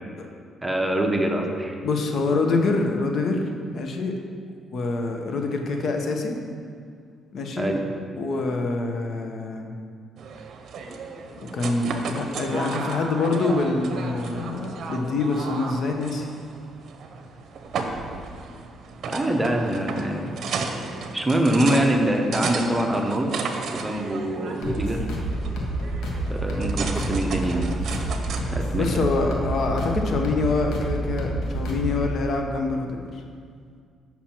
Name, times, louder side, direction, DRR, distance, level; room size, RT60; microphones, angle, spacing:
voice 1, 0.6-1.8 2.3-2.5 7.6-7.9 19.1-20.3 21.1-23.3 23.7-25.1 26.3-27.7 28.5-29.0, right 1 dB, 10° right, 2 dB, 0.9 m, -24 dB
voice 2, 1.8-4.1 4.7-6.4 7.3-7.7 8.2-9.7 11.5-16.3 28.8-33.0, left 3 dB, 60° left, 3 dB, 0.8 m, -25 dB
sound 1, 10.2-29.0, right 4 dB, 65° right, 0.7 m, -34 dB
sound 2, 24.6-32.1, right 1 dB, 75° left, 1.3 m, -28 dB
7.3 x 5.8 x 4.4 m, 2.2 s
cardioid pair, 90°, 0 cm